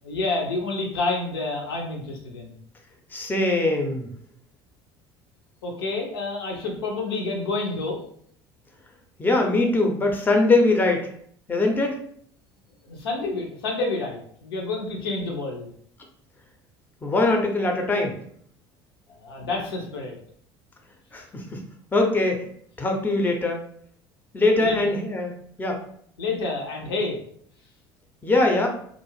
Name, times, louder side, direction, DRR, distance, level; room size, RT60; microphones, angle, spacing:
voice 1, 0.0-2.5 5.6-8.0 12.9-15.7 19.1-20.2 24.6-24.8 26.2-27.2, left 3 dB, 80° left, 0 dB, 0.6 m, -29 dB
voice 2, 3.1-4.1 9.2-11.1 11.5-12.0 17.0-18.2 21.1-21.6 21.9-22.4 22.8-23.6 24.3-25.3 25.6-25.8 28.2-28.7, left 2 dB, 15° left, 2 dB, 0.6 m, -22 dB
2.4 x 2.0 x 3.2 m, 0.62 s
hypercardioid pair, 65°, 12 cm